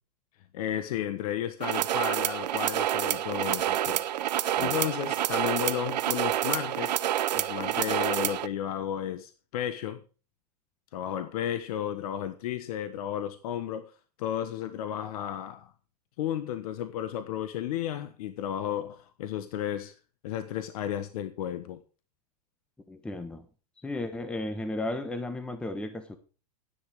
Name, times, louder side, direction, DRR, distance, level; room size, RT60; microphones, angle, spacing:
voice 1, 0.5-4.0 4.3-7.0 7.3-10.0 10.9-13.9 14.2-15.7 16.2-20.0 20.2-21.8, left 10 dB, 60° left, 1.3 m, -33 dB
sound 1, 1.6-8.5, right 12 dB, 85° right, 0.9 m, -28 dB
voice 2, 22.9-23.4 23.8-26.2, left 2 dB, 5° left, 1.0 m, -34 dB
13.0 x 10.5 x 4.9 m
supercardioid pair, 155°, 21 cm